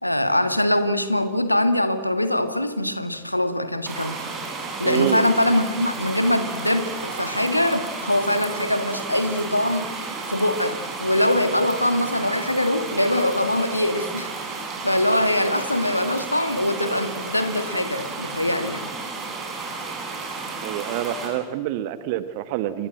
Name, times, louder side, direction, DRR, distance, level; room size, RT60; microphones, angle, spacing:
voice 1, 0.0-4.2 4.8-9.9 10.3-14.3 14.8-18.9, left 1 dB, 85° left, 10 dB, 1.8 m, -23 dB
sound 1, 3.9-21.3, right 4 dB, 25° right, 7.9 m, -33 dB
voice 2, 4.8-5.2 20.6-22.9, right 13 dB, 50° right, 12 dB, 1.4 m, -27 dB
29.0 x 24.0 x 7.8 m, 1.2 s
figure-of-eight pair, 90°, 0 cm